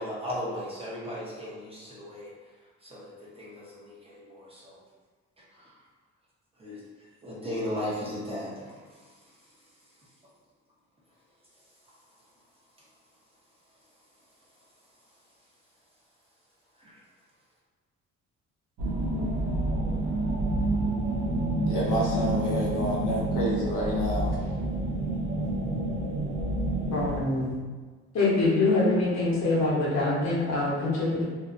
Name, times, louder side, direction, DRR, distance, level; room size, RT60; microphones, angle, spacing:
voice 1, 0.0-2.3 2.8-4.8 5.4-5.7 6.6-9.1 16.8-17.0, left 1 dB, 20° right, -6 dB, 0.8 m, -37 dB
sound 1, 18.8-27.2, right 2 dB, 85° right, 0.6 m, -28 dB
voice 2, 21.7-24.4, equal, 85° left, -4 dB, 0.7 m, -28 dB
voice 3, 26.9-27.6 28.1-31.2, left 2 dB, 60° left, -6 dB, 1.0 m, -24 dB
2.7 x 2.2 x 2.5 m, 1.4 s
cardioid pair, 90°, 30 cm